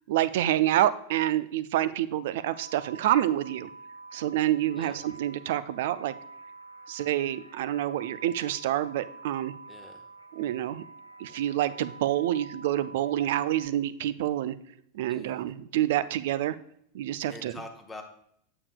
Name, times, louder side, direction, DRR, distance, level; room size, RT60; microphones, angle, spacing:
voice 1, 0.1-3.7 4.1-6.2 6.9-9.5 10.3-10.8 11.2-14.6 14.9-16.6 16.9-17.6, right 12 dB, 55° right, 16 dB, 0.4 m, -27 dB
wierd chimes, 2.4-13.7, right 3 dB, 75° left, 0.5 m, -48 dB
voice 2, 9.7-10.0 15.1-15.3 17.3-18.0, left 2 dB, 10° left, 2 dB, 0.8 m, -44 dB
8.3 x 7.0 x 2.2 m, 0.68 s
figure-of-eight pair, 90°, 0 cm